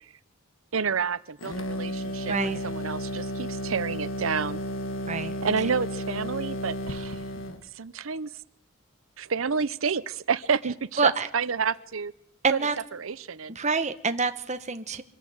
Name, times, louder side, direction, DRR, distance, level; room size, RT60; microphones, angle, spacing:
voice 1, 0.7-4.6 5.4-7.2 7.8-8.3 9.2-12.1 12.5-12.6 12.9-13.6, right 5 dB, 90° right, 16 dB, 0.8 m, -29 dB
sound 1, 1.4-7.6, equal, 75° left, 1.6 m, -33 dB
voice 2, 12.4-12.7 13.5-15.0, right 4 dB, 35° right, 8 dB, 1.2 m, -26 dB
24.5 x 14.5 x 7.9 m, 0.77 s
head